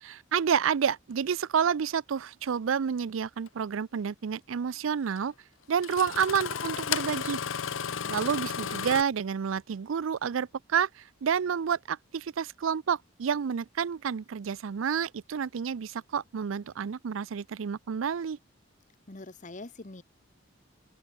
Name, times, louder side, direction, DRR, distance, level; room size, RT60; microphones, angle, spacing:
voice 1, 0.0-5.3 5.7-7.4 8.1-18.4, right 7 dB, 85° right, 0.5 m, -29 dB
Engine starting, 3.5-3.6 5.2-5.3 5.8-9.0, left 7 dB, 80° left, 0.8 m, -33 dB
voice 2, 19.1-20.0, left 2 dB, 40° left, 1.2 m, -44 dB
open air
head